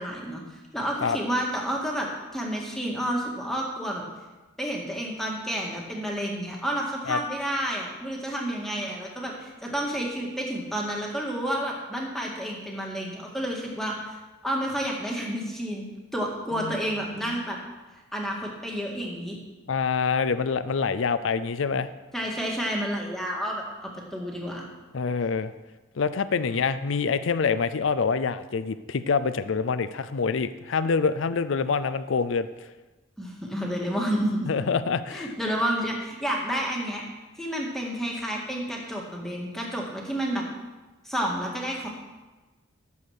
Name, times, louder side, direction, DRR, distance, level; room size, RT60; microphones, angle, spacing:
voice 1, 0.0-4.0 4.6-14.2 14.4-15.9 16.1-17.6 18.1-19.4 22.1-24.7 33.2-34.5 35.1-37.0 37.4-40.4 41.0-41.9, equal, ahead, -2 dB, 1.9 m, -30 dB
voice 2, 19.7-21.9 24.9-25.5 26.0-32.5 34.5-35.3, left 5 dB, 75° left, 13 dB, 0.5 m, -26 dB
13.0 x 7.2 x 6.5 m, 1.2 s
head